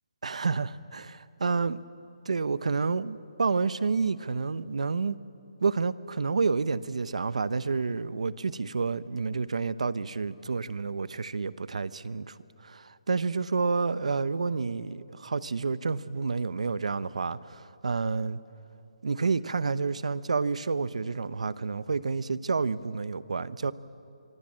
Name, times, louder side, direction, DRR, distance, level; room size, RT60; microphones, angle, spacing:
voice 1, 0.2-1.8 2.3-5.2 5.6-12.4 12.6-18.4 19.0-23.7, right 4 dB, 70° right, 0.8 m, -29 dB
25.0 x 23.5 x 7.5 m
hypercardioid pair, 180°, 4 cm